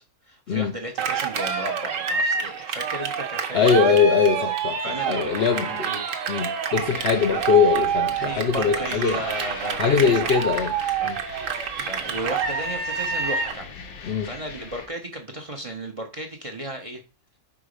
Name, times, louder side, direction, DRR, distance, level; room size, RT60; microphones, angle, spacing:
voice 1, 0.0-3.9 4.8-6.0 8.2-10.4 11.0-17.0, right 1 dB, 30° right, 0.7 m, -35 dB
Cheering, 1.0-13.6, right 6 dB, 70° right, 1.2 m, -27 dB
voice 2, 3.5-5.9 6.3-9.2 9.8-10.7 11.0-11.2 14.0-14.3, left 6 dB, 60° left, 0.7 m, -21 dB
sound 1, 6.7-14.9, left 5 dB, 85° left, 1.4 m, -41 dB
4.9 x 3.8 x 5.1 m
omnidirectional pair, 1.5 m